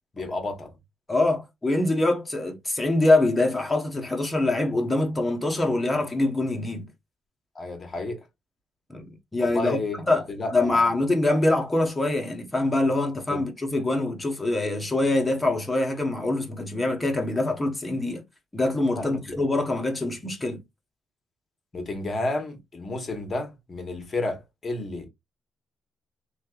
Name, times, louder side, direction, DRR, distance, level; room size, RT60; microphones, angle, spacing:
voice 1, 0.1-0.8 7.5-8.3 9.4-10.0 10.3-10.9 13.3-13.4 18.9-19.4 21.7-25.1, left 2 dB, 35° left, 1.3 m, -31 dB
voice 2, 1.1-6.9 8.9-9.8 10.1-10.2 10.5-18.2 18.5-20.6, left 2 dB, 15° left, 1.1 m, -24 dB
3.2 x 2.7 x 2.4 m
cardioid pair, 90°, 0 cm